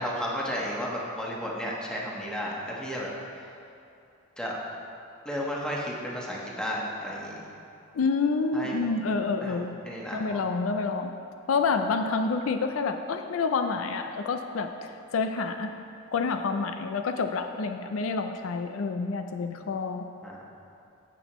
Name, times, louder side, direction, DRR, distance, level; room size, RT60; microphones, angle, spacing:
voice 1, 0.0-3.1 4.4-4.6 5.2-7.4 8.5-8.9 9.4-10.4 20.2-20.4, equal, 5° left, -4 dB, 1.2 m, -33 dB
voice 2, 7.9-9.8 10.1-11.1 11.5-15.7 16.1-20.1, left 4 dB, 70° left, 7 dB, 0.4 m, -28 dB
15.0 x 6.0 x 3.0 m, 2.7 s
head